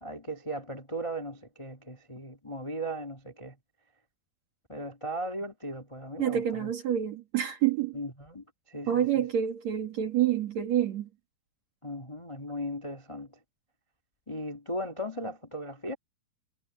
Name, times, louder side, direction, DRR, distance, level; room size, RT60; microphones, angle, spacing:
voice 1, 0.0-3.5 4.7-6.7 7.9-9.0 11.8-13.3 14.3-15.9, equal, 15° left, 1.2 m, -37 dB
voice 2, 6.2-8.0 8.9-11.1, right 10 dB, 50° right, 2.8 m, -27 dB
omnidirectional pair, 4.5 m